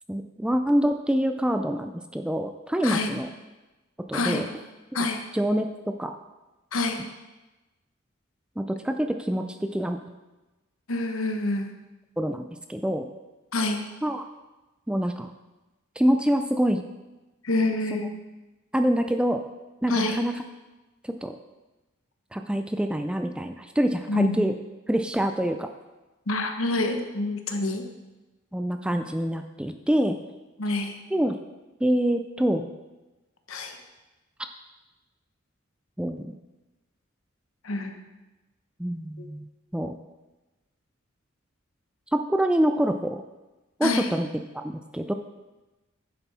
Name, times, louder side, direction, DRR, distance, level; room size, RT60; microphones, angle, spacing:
voice 1, 0.1-3.3 4.1-4.5 5.3-6.1 8.6-10.0 12.2-13.1 14.0-14.3 14.9-15.3 16.0-16.8 17.9-18.0 18.7-19.4 19.8-20.3 21.0-21.3 22.3-24.5 24.9-25.7 28.5-30.2 31.1-31.4 31.8-32.7 36.0-36.3 38.8-39.9 42.1-43.2 43.8-44.3 44.5-45.1, equal, 5° right, 6 dB, 0.3 m, -26 dB
voice 2, 4.1-4.4 4.9-5.2 6.7-7.0 10.9-11.7 13.5-13.8 17.4-18.1 19.9-20.2 24.1-24.4 26.3-27.8 30.6-31.0 33.5-33.8 37.6-37.9 39.2-39.3 43.8-44.1, left 2 dB, 85° left, 5 dB, 1.0 m, -27 dB
10.0 x 7.2 x 4.2 m, 1.1 s
head